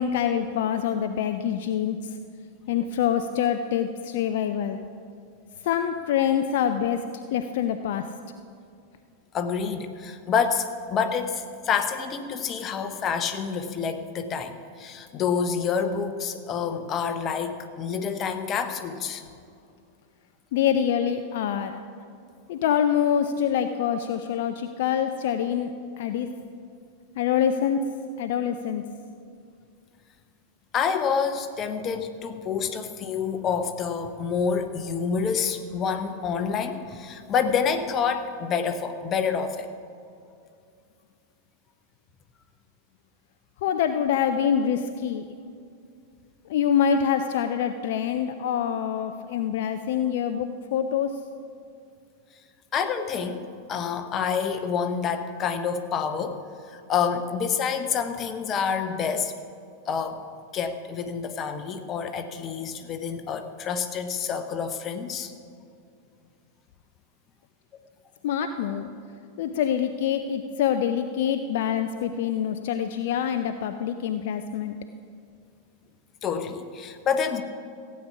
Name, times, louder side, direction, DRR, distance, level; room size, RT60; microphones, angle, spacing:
voice 1, 0.0-2.1 2.7-4.8 5.6-7.0 7.3-8.0 20.5-21.7 22.5-26.3 27.2-27.8 28.2-28.8 43.6-45.3 46.5-51.1 68.2-68.9 69.4-74.7, left 8 dB, 55° left, 8 dB, 0.5 m, -25 dB
voice 2, 9.3-19.2 30.7-39.7 52.7-53.4 53.7-56.4 56.7-59.3 59.9-60.2 60.5-65.3 76.2-77.4, left 6 dB, 30° left, 7 dB, 1.0 m, -28 dB
15.5 x 8.6 x 5.9 m, 2.3 s
figure-of-eight pair, 90°, 0 cm